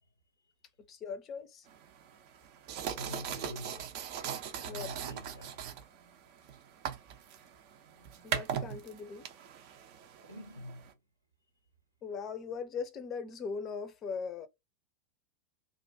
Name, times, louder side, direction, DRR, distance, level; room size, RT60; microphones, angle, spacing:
voice 1, 0.9-1.7 4.7-5.0 8.2-9.3 12.0-14.5, left 5 dB, 30° left, 0.5 m, -39 dB
sound 1, 1.7-10.9, right 8 dB, 45° right, 0.5 m, -40 dB
voice 2, 2.9-4.0 4.5-5.7 10.2-10.9, left 1 dB, 90° right, 0.9 m, -46 dB
2.4 x 2.3 x 2.6 m
figure-of-eight pair, 90°, 0 cm